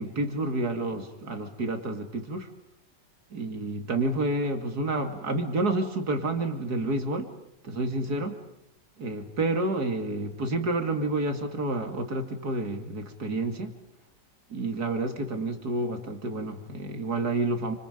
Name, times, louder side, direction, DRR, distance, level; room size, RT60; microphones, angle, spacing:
voice 1, 0.0-2.5 3.3-7.3 7.6-8.4 9.0-13.7 14.5-17.7, right 2 dB, 60° right, 6 dB, 3.0 m, -29 dB
30.0 x 26.5 x 5.3 m, 0.80 s
omnidirectional pair, 1.9 m